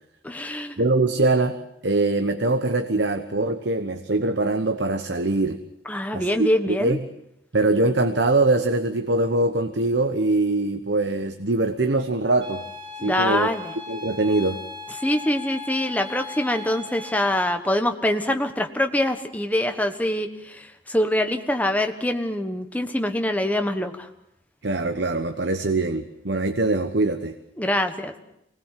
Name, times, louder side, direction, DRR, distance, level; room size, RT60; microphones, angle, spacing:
voice 1, 0.2-0.8 5.8-7.0 13.0-13.7 15.0-24.1 27.6-28.1, left 1 dB, 10° left, 6 dB, 1.3 m, -24 dB
voice 2, 0.8-1.6 1.8-5.6 6.1-7.0 7.5-12.6 13.0-13.5 13.9-14.6 24.6-27.3, right 2 dB, 70° right, 8 dB, 1.1 m, -23 dB
sound 1, 12.4-17.4, left 4 dB, 25° right, 7.4 m, -37 dB
24.5 x 19.0 x 7.5 m, 0.80 s
head